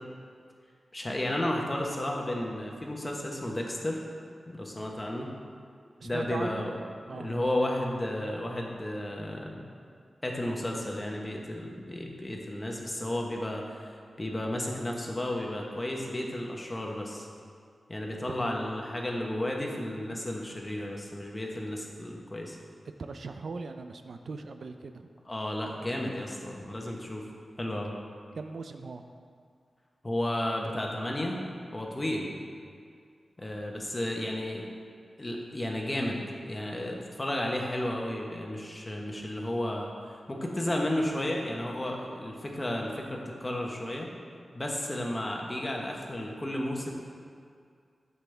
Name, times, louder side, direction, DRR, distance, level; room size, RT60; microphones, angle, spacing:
voice 1, 0.9-4.0 4.5-5.3 6.0-6.7 7.1-9.7 10.2-13.9 14.2-17.3 17.9-22.6 25.2-27.2 27.6-27.9 30.0-31.4 31.7-32.3 33.4-34.7 35.2-44.1 44.5-46.9, left 1 dB, 20° left, 0 dB, 1.1 m, -33 dB
voice 2, 6.0-6.7 7.1-7.3 23.0-25.1 28.3-29.0, right 4 dB, 65° right, 7 dB, 0.4 m, -39 dB
11.5 x 7.0 x 3.4 m, 2.2 s
wide cardioid pair, 135°, 0 cm